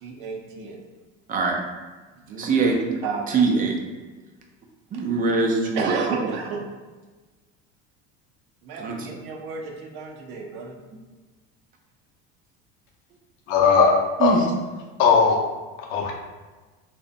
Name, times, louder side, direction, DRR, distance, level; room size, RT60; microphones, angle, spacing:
voice 1, 0.0-0.8 2.2-3.4 4.9-5.0 5.7-6.6 8.6-10.7, right 5 dB, 75° right, 1 dB, 0.6 m, -32 dB
voice 2, 2.4-2.8 3.3-3.8 4.9-5.9 8.8-9.2 14.2-14.5, right 4 dB, 30° right, 1 dB, 0.4 m, -22 dB
voice 3, 13.5-14.3 15.0-15.4 15.9-16.1, left 5 dB, 70° left, 0 dB, 0.6 m, -18 dB
2.7 x 2.0 x 2.4 m, 1.3 s
supercardioid pair, 120°, 30 cm